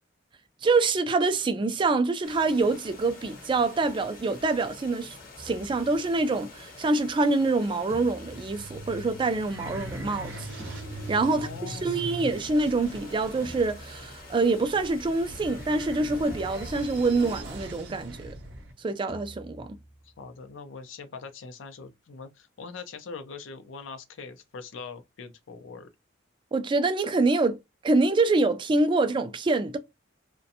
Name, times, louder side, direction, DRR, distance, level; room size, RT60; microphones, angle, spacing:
voice 1, 0.6-10.5 11.1-18.3 18.8-19.7 26.5-27.6 27.8-29.8, right 3 dB, 25° right, 0.3 m, -25 dB
sound 1, 2.2-17.4, left 3 dB, 50° left, 0.9 m, -47 dB
sound 2, 5.4-6.7 7.9-9.6 10.6-11.9 13.4-14.8 16.3-17.4 19.1-20.5, right 1 dB, 15° left, 0.7 m, -48 dB
sound 3, 8.3-18.7, right 1 dB, 65° right, 0.7 m, -41 dB
voice 2, 11.1-12.1 20.0-25.9, left 4 dB, 75° left, 0.5 m, -42 dB
2.5 x 2.1 x 2.7 m
head